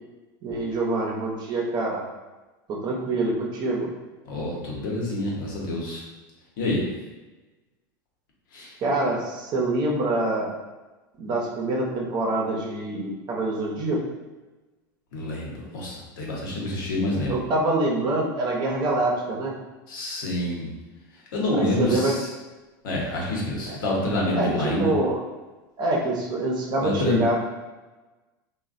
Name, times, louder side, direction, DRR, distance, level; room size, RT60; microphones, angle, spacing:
voice 1, 0.4-2.0 2.7-3.9 8.8-10.5 11.2-14.0 17.2-19.6 21.5-22.1 23.7-23.8 24.3-25.2 25.8-27.4, right 2 dB, 40° right, -2 dB, 0.7 m, -25 dB
voice 2, 4.2-6.0 6.6-6.9 8.5-8.7 15.1-17.4 19.9-20.7 21.3-22.3 22.8-24.9 26.8-27.2, left 2 dB, 80° left, -3 dB, 0.9 m, -27 dB
3.1 x 2.2 x 2.5 m, 1.2 s
supercardioid pair, 110°, 11 cm